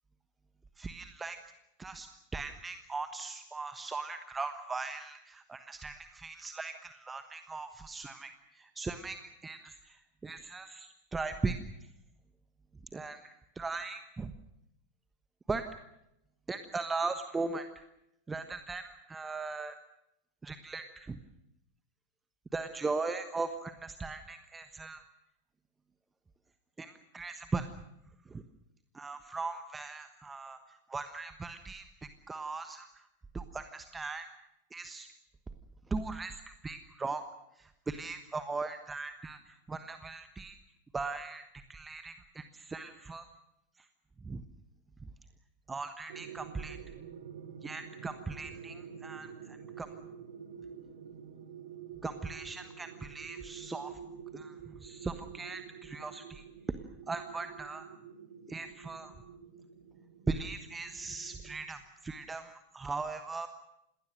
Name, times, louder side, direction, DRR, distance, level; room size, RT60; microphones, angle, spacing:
voice 1, 0.8-1.4 1.8-2.1 2.3-11.9 12.9-14.3 15.5-15.7 16.5-17.8 18.3-19.8 20.4-21.2 22.5-25.0 26.8-27.7 28.3-28.4 28.9-33.1 33.3-34.3 34.7-35.1 35.9-37.2 37.5-40.6 40.9-43.3 43.8-43.9 44.2-44.4 45.7-46.8 47.6-49.9 52.0-54.0 54.3-56.8 57.1-57.9 58.5-59.1 60.3-63.5, right 3 dB, 15° right, 9 dB, 1.2 m, -39 dB
sound 1, 46.1-61.7, right 7 dB, 60° right, 2.6 m, -48 dB
28.0 x 19.5 x 6.6 m, 0.82 s
figure-of-eight pair, 90°, 0 cm